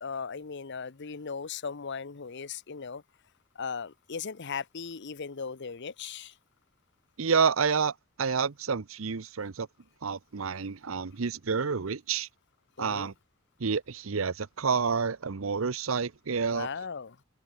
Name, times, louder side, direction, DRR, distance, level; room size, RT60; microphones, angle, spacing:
voice 1, 0.0-3.0 3.5-6.3 12.8-13.1 16.5-17.2, left 5 dB, 55° left, 0.8 m, -37 dB
voice 2, 7.2-9.7 10.0-12.3 12.8-13.1 13.6-16.7, right 5 dB, 70° right, 0.8 m, -29 dB
open air
head